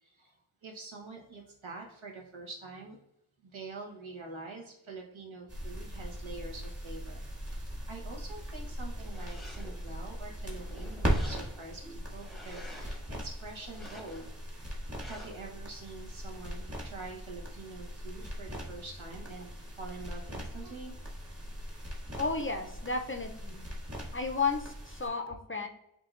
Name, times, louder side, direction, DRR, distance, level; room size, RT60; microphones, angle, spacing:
voice 1, 0.0-0.4 0.6-3.0 3.4-14.3 15.0-20.9, right 3 dB, 75° right, 0 dB, 1.2 m, -46 dB
sound 1, 5.5-25.1, equal, 30° right, 1.5 m, -39 dB
sound 2, 9.0-9.9 10.4-11.8 12.2-13.1 13.6-14.4 15.0-15.5, left 1 dB, ahead, 0.8 m, -50 dB
voice 2, 22.2-23.7 24.1-25.7, left 4 dB, 25° left, 5 dB, 0.5 m, -33 dB
7.7 x 2.7 x 2.5 m, 0.81 s
wide cardioid pair, 60°, 48 cm